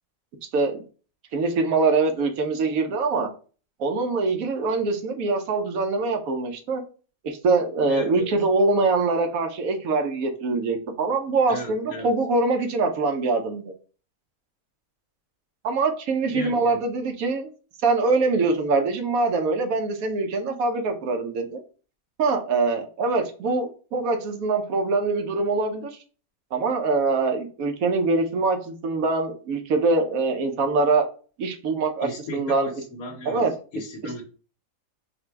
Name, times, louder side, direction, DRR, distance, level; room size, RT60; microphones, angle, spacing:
voice 1, 0.4-0.8 1.3-3.3 3.8-6.8 7.2-13.7 15.6-17.5 17.8-21.6 22.2-25.9 26.5-31.1 31.4-32.7 33.3-33.5, right 3 dB, 80° right, 4 dB, 1.2 m, -23 dB
voice 2, 7.9-8.3 11.5-12.1 16.3-16.8 32.0-33.5 33.7-34.2, left 1 dB, 85° left, 0 dB, 1.3 m, -36 dB
4.2 x 2.2 x 4.4 m, 0.38 s
omnidirectional pair, 1.5 m